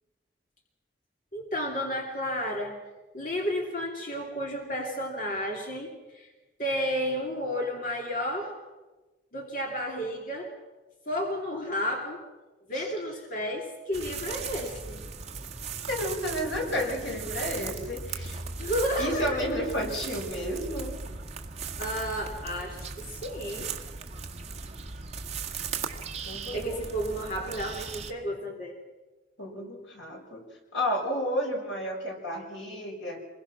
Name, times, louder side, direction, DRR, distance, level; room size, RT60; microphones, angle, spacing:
voice 1, 1.3-2.8 3.1-6.3 6.6-8.5 9.3-10.5 11.1-12.2 12.7-15.0 18.6-19.4 21.8-23.7 26.5-28.7, equal, 45° left, 0 dB, 2.9 m, -32 dB
sound 1, 13.9-28.1, right 5 dB, 35° right, 1.7 m, -38 dB
voice 2, 15.9-18.4 19.0-21.0 26.3-26.8 29.4-30.4 30.7-33.2, equal, 90° left, 1 dB, 6.0 m, -31 dB
26.5 x 22.0 x 6.0 m, 1.2 s
head